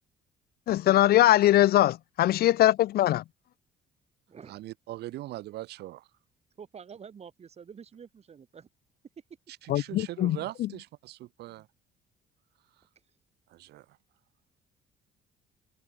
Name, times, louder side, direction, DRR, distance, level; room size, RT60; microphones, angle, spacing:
voice 1, 0.7-3.2 9.7-10.4, left 14 dB, 65° left, 0.9 m, -21 dB
voice 2, 4.5-6.1 9.6-11.7 12.8-12.9 13.5-14.0, right 16 dB, 75° right, 3.9 m, -41 dB
voice 3, 6.6-8.7, right 7 dB, 40° right, 7.8 m, -47 dB
cardioid pair, 110°, 17 cm